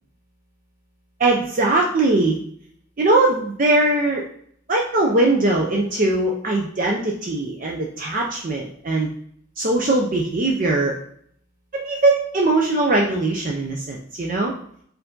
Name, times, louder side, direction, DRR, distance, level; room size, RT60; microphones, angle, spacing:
voice 1, 1.2-2.4 3.0-4.2 4.7-9.1 9.6-11.0 11.7-14.5, right 2 dB, 40° right, 0 dB, 0.5 m, -20 dB
4.6 x 2.6 x 3.7 m, 0.65 s
head